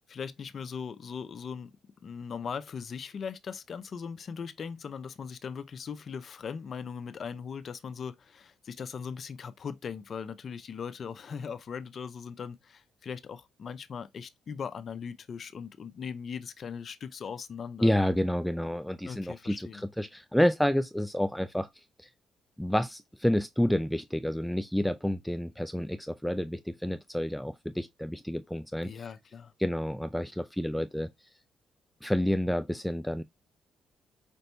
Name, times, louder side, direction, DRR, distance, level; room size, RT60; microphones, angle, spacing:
voice 1, 0.1-1.7 2.0-17.9 19.0-19.8 28.8-29.5, left 6 dB, 50° left, 0.6 m, -39 dB
voice 2, 17.8-21.7 22.0-22.1 22.6-29.0 29.6-31.1 32.0-33.2, equal, ahead, 0.4 m, -29 dB
5.3 x 2.7 x 3.3 m
cardioid pair, 90°, 0 cm